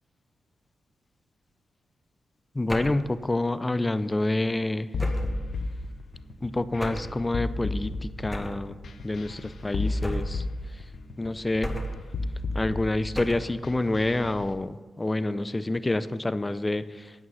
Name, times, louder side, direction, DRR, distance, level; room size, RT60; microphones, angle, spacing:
voice 1, 2.5-4.9 6.4-8.8 9.0-10.4 11.2-11.7 12.5-17.1, left 2 dB, 25° left, 14 dB, 0.6 m, -28 dB
sound 1, 2.7-3.1 5.0-5.4 6.8-7.2 8.3-8.7 10.0-10.5 11.6-12.1 13.1-13.6, equal, 10° left, 1.8 m, -34 dB
sound 2, 4.9-14.5, left 2 dB, 65° left, 1.0 m, -33 dB
9.3 x 9.0 x 5.6 m, 1.3 s
supercardioid pair, 40°, 0 cm